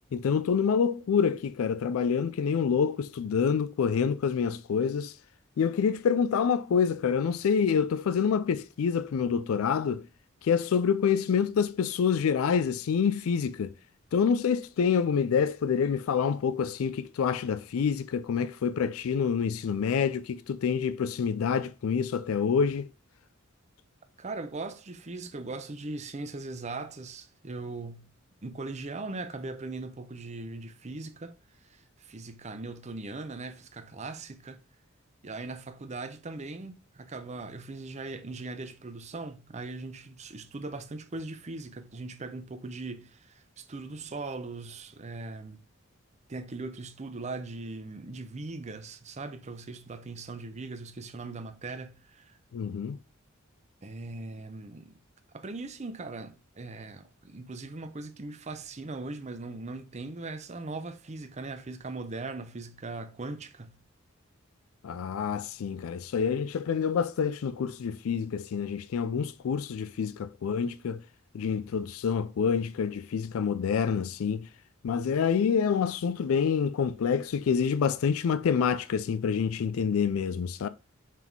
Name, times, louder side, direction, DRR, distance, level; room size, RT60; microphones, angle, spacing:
voice 1, 0.1-5.1 5.6-10.1 10.4-13.7 14.1-22.9 52.5-53.0 64.8-71.0 71.3-74.5 74.8-80.7, left 6 dB, 85° left, 0.4 m, -27 dB
voice 2, 24.2-28.1 28.4-31.4 31.6-34.6 35.2-45.6 46.3-52.4 53.8-55.0 55.3-63.8, right 3 dB, 35° right, 0.7 m, -39 dB
5.9 x 3.6 x 4.6 m
head